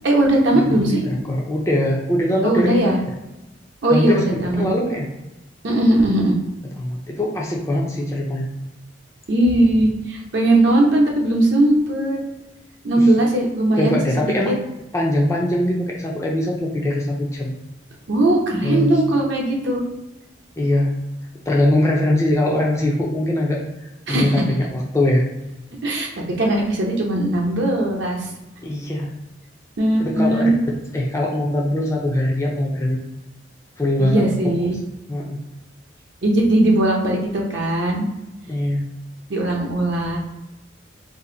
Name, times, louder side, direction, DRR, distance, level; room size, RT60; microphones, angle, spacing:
voice 1, 0.0-1.0 2.4-3.0 3.8-4.6 5.6-6.3 9.3-12.2 12.8-14.6 18.1-19.8 24.1-24.4 25.8-28.3 29.8-30.6 34.0-34.8 36.2-38.0 39.3-40.2, right 1 dB, 65° right, -1 dB, 0.7 m, -19 dB
voice 2, 1.1-2.9 3.9-4.2 4.6-5.1 6.8-8.5 12.9-13.1 13.8-14.6 14.9-17.5 18.6-18.9 20.6-20.9 21.5-25.2 28.6-29.1 30.0-30.5 30.9-33.0 33.8-34.3 35.1-35.4 38.5-38.9, left 1 dB, 15° left, -2 dB, 0.4 m, -21 dB
2.7 x 2.5 x 3.8 m, 1.0 s
head